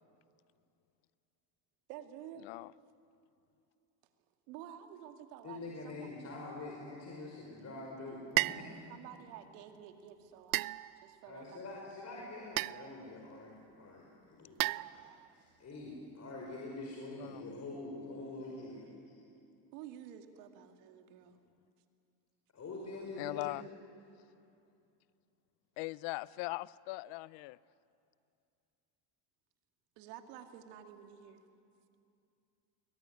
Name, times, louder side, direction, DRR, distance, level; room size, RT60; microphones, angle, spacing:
voice 1, 1.9-2.5 4.5-6.1 8.9-10.7 11.0-11.8 19.7-21.4 30.0-31.4, right 10 dB, 80° right, 2.2 m, -50 dB
voice 2, 5.4-8.8 11.2-19.2 22.5-23.6, left 2 dB, 35° left, 5.4 m, -45 dB
sound 1, 8.4-8.7 10.5-11.2 12.6-13.0 14.6-15.3, right 19 dB, 50° right, 0.5 m, -34 dB
voice 3, 23.2-23.7 25.8-27.6, left 21 dB, 70° left, 0.7 m, -40 dB
22.5 x 20.0 x 9.7 m
supercardioid pair, 95°, 46 cm